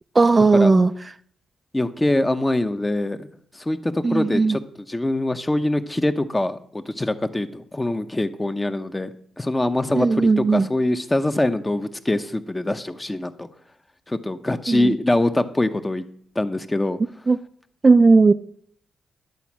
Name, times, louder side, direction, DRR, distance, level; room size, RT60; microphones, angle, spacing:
voice 1, 0.2-0.9 4.0-4.6 9.9-10.7 14.7-14.9 17.3-17.4 17.8-18.3, right 3 dB, 30° right, 0.4 m, -16 dB
voice 2, 1.7-3.3 3.5-13.5 14.1-16.0 16.4-17.0, left 1 dB, 15° left, 0.8 m, -24 dB
11.0 x 4.2 x 7.2 m
cardioid pair, 80°, 0 cm